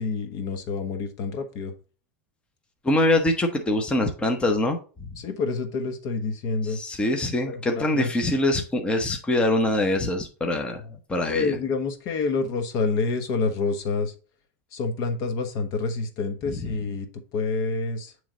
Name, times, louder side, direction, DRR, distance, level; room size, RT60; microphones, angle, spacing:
voice 1, 0.0-1.7 5.2-6.8 7.5-8.1 11.3-14.1 14.7-17.1 17.3-18.1, left 4 dB, 50° left, 8 dB, 1.1 m, -27 dB
voice 2, 2.8-5.2 6.6-11.5 16.5-16.7, left 1 dB, 15° left, 4 dB, 0.9 m, -24 dB
8.7 x 3.2 x 3.8 m, 0.36 s
supercardioid pair, 120°, 8 cm